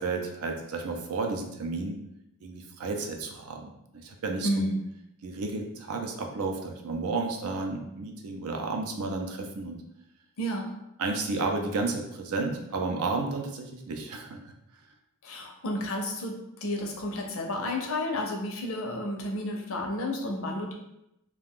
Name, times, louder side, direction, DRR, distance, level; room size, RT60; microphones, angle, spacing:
voice 1, 0.0-1.9 2.4-4.7 5.2-9.8 11.0-14.5, right 3 dB, 75° right, 3 dB, 0.5 m, -32 dB
voice 2, 4.4-4.8 10.4-10.7 15.2-20.7, left 1 dB, 65° left, 2 dB, 0.6 m, -31 dB
2.4 x 2.2 x 3.5 m, 0.83 s
head